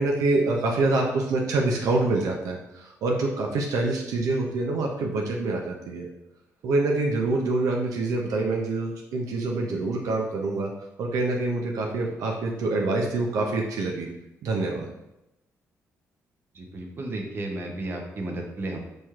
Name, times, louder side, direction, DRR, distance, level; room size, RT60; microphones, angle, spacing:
voice 1, 0.0-6.1 6.6-10.7 11.0-14.1 14.4-14.9, right 2 dB, 80° right, 0 dB, 0.5 m, -26 dB
voice 2, 16.5-18.8, right 2 dB, 40° right, 2 dB, 0.7 m, -33 dB
4.2 x 3.1 x 2.4 m, 0.91 s
cardioid pair, 95°, 6 cm